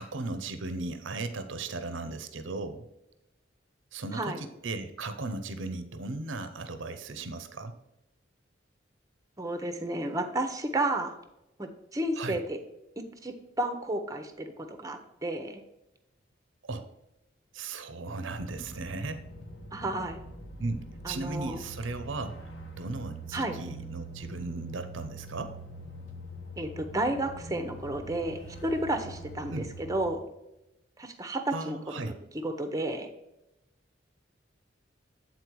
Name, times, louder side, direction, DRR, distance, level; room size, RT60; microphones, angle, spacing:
voice 1, 0.0-2.8 3.9-7.7 12.2-12.4 16.7-16.9 17.5-19.2 20.6-25.6 29.5-29.7 31.5-32.2, right 3 dB, 75° right, 9 dB, 0.7 m, -36 dB
voice 2, 9.4-11.1 11.6-12.6 13.2-15.6 19.7-20.2 21.0-21.6 23.3-23.6 26.6-29.6 29.9-30.2 31.0-32.1 32.4-33.1, right 1 dB, 20° right, 7 dB, 0.8 m, -32 dB
sound 1, 18.4-30.2, right 1 dB, 75° left, 1.4 m, -44 dB
8.4 x 4.2 x 4.6 m, 0.92 s
head